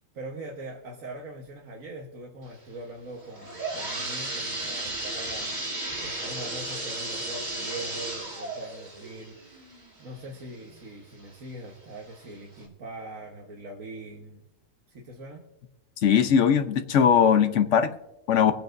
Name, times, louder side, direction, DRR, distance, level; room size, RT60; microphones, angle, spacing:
voice 1, 0.1-5.5 5.8-14.4 14.9-15.5, right 1 dB, 80° right, 0 dB, 1.7 m, -42 dB
sound 1, 3.2-10.8 11.3-11.4 12.1-12.2 12.6-12.7, right 2 dB, 35° right, 2.0 m, -34 dB
voice 2, 16.0-17.9 18.3-18.5, left 7 dB, 65° left, 9 dB, 1.1 m, -20 dB
24.5 x 9.0 x 2.6 m, 0.94 s
omnidirectional pair, 1.4 m